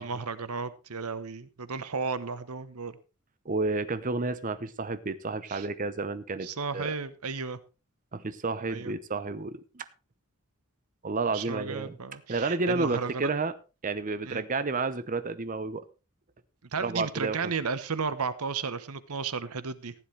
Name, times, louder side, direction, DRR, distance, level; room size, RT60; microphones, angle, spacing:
voice 1, 0.0-3.0 5.5-5.7 6.4-7.6 8.7-8.9 11.3-13.3 14.3-14.4 16.7-19.9, right 5 dB, 85° right, 14 dB, 1.1 m, -34 dB
voice 2, 3.5-6.5 6.7-6.9 8.1-9.8 11.0-12.0 12.3-13.5 13.8-15.8 16.8-17.5, right 3 dB, 35° right, 12 dB, 0.8 m, -31 dB
15.5 x 10.5 x 3.3 m, 0.31 s
head